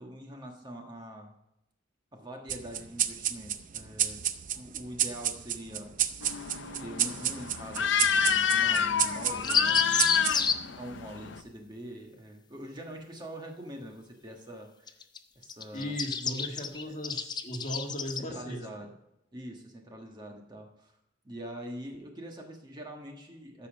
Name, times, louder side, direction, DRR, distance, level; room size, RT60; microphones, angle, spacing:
voice 1, 0.0-1.3 2.1-4.2 4.5-5.9 6.4-10.0 10.8-14.9 15.3-16.0 16.9-17.0 18.1-18.9 19.3-21.0 21.2-23.7, right 1 dB, 20° right, 2 dB, 1.4 m, -44 dB
sound 1, 2.5-11.4, right 10 dB, 45° right, 0.5 m, -32 dB
sound 2, 6.2-11.4, left 7 dB, 65° left, 0.6 m, -29 dB
sound 3, 9.4-10.5 14.9-15.2 15.4-18.2, left 5 dB, 20° left, 0.6 m, -29 dB
voice 2, 15.7-18.6, equal, 40° left, 1 dB, 1.8 m, -37 dB
14.0 x 5.5 x 5.2 m, 0.83 s
head